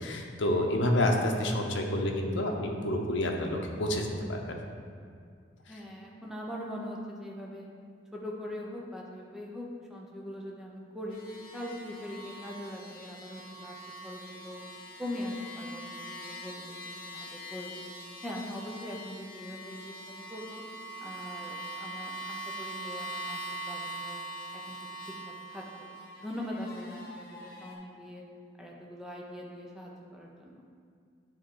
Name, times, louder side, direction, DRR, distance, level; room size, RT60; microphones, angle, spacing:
voice 1, 0.0-4.6, left 1 dB, 75° left, 1 dB, 0.7 m, -29 dB
voice 2, 5.7-7.7 8.1-11.2 11.5-13.8 14.0-14.6 15.0-17.8 18.2-20.0 20.3-20.6 21.0-24.2 24.5-24.8 25.5-25.9 26.2-28.2 28.6-30.6, left 1 dB, 5° right, -3 dB, 0.7 m, -41 dB
sound 1, 11.1-27.8, right 1 dB, 50° left, 0.9 m, -43 dB
9.1 x 3.5 x 3.8 m, 2.2 s
head